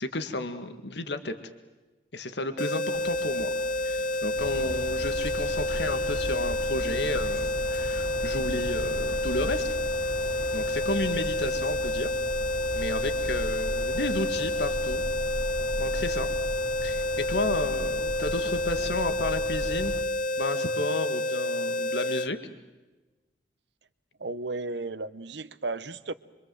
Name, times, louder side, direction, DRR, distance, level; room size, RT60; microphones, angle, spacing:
voice 1, 0.0-1.3 2.1-3.5 3.8-9.7 10.5-12.1 12.7-15.0 15.8-16.3 16.8-19.9 20.4-22.4, left 2 dB, 70° left, 8 dB, 1.9 m, -32 dB
sound 1, 2.6-22.3, left 1 dB, 45° left, 1.0 m, -29 dB
sound 2, 2.9-10.7, left 1 dB, 90° left, 2.1 m, -43 dB
sound 3, 4.4-20.0, equal, 25° left, 2.4 m, -37 dB
voice 2, 24.2-26.1, right 3 dB, 70° right, 15 dB, 1.0 m, -34 dB
26.0 x 25.0 x 7.8 m, 1.2 s
head